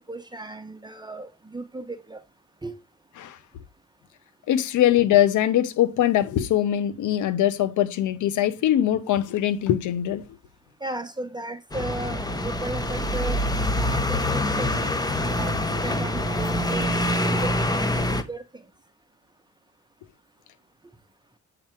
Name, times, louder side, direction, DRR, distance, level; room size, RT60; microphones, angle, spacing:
voice 1, 0.0-2.2 2.6-2.8 10.8-13.5 13.7-17.5 17.9-18.0 18.3-18.4, right 2 dB, 15° right, 1.0 m, -36 dB
voice 2, 4.5-10.2, left 11 dB, 80° left, 1.0 m, -22 dB
sound 1, 11.7-18.2, left 1 dB, 15° left, 1.1 m, -25 dB
8.7 x 4.0 x 4.6 m
cardioid pair, 90°, 30 cm